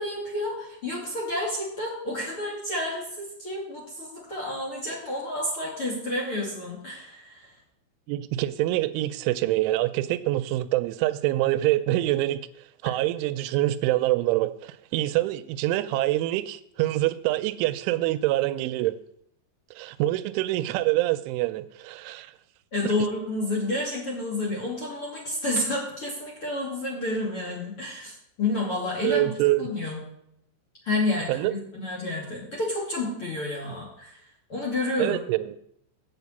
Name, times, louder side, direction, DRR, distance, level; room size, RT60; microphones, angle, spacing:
voice 1, 0.0-7.5 22.7-29.3 29.6-30.0 30.8-34.2 34.5-35.2, left 2 dB, 40° left, 2.2 m, -30 dB
voice 2, 8.1-12.4 12.8-19.0 19.8-22.3 29.0-29.7 31.3-31.5 35.0-35.6, right 16 dB, 85° right, 3.0 m, -25 dB
8.1 x 7.4 x 8.2 m
omnidirectional pair, 5.5 m